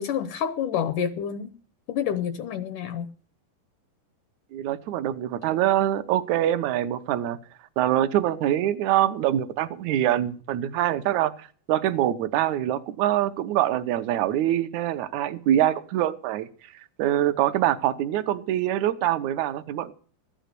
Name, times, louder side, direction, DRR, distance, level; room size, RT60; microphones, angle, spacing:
voice 1, 0.0-1.5 1.9-3.1, left 8 dB, 70° left, 11 dB, 2.1 m, -28 dB
voice 2, 4.5-7.4 7.8-16.5 17.0-19.9, right 12 dB, 75° right, 10 dB, 1.8 m, -24 dB
14.5 x 10.0 x 6.7 m, 0.43 s
omnidirectional pair, 4.2 m